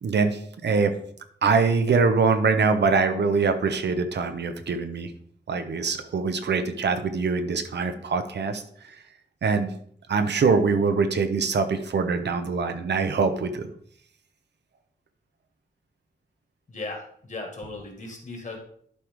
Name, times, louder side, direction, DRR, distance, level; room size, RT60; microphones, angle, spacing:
voice 1, 0.0-0.9 1.4-5.1 5.5-8.6 9.4-9.7 10.1-13.7, right 4 dB, 75° right, 8 dB, 0.9 m, -23 dB
voice 2, 16.7-18.6, left 3 dB, 45° left, 3 dB, 1.7 m, -37 dB
11.5 x 4.7 x 3.5 m, 0.62 s
wide cardioid pair, 170°, 18 cm